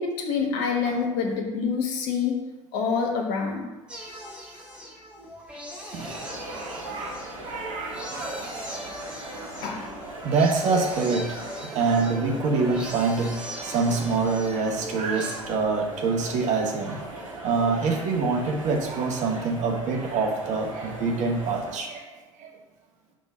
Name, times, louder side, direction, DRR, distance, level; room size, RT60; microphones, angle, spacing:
voice 1, 0.0-2.4 2.7-3.7 9.6-9.9, left 5 dB, 60° left, 1 dB, 1.3 m, -26 dB
sound 1, 3.9-15.4, equal, 5° right, 2.1 m, -41 dB
voice 2, 5.9-8.0 10.2-11.5 11.7-17.0 17.4-22.1 22.4-22.5, right 4 dB, 45° right, 2 dB, 1.1 m, -26 dB
sound 2, 6.0-21.8, right 1 dB, 80° right, 1.2 m, -39 dB
6.2 x 3.7 x 5.4 m, 1.1 s
figure-of-eight pair, 60°, 17 cm